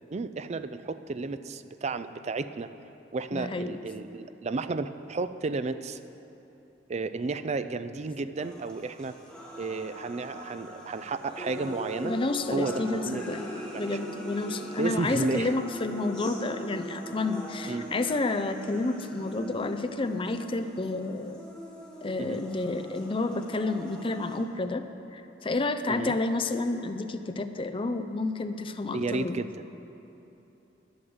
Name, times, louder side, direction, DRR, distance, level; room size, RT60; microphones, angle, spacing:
voice 1, 0.1-2.7 3.1-6.0 6.9-9.1 9.6-12.1 12.5-13.3 13.7-14.0 14.8-15.5 17.7-17.9 22.2-22.4 25.9-26.1 28.9-29.5, right 3 dB, 35° right, 12 dB, 0.4 m, -32 dB
voice 2, 3.3-3.8 12.0-21.4 22.0-24.8 25.1-29.5, left 2 dB, 30° left, 8 dB, 0.6 m, -30 dB
sound 1, 8.4-24.4, right 1 dB, 5° left, 2.1 m, -41 dB
11.0 x 9.6 x 7.9 m, 3.0 s
head